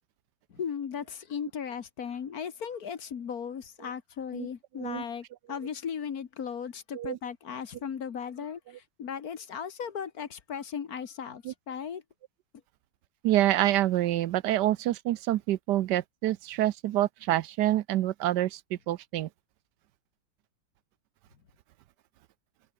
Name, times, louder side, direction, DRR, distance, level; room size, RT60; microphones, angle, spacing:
voice 1, 0.5-8.6 9.0-12.0, left 7 dB, 50° left, 1.6 m, -36 dB
voice 2, 13.2-18.6 18.9-19.3, right 14 dB, 70° right, 1.1 m, -27 dB
omnidirectional pair, 2.1 m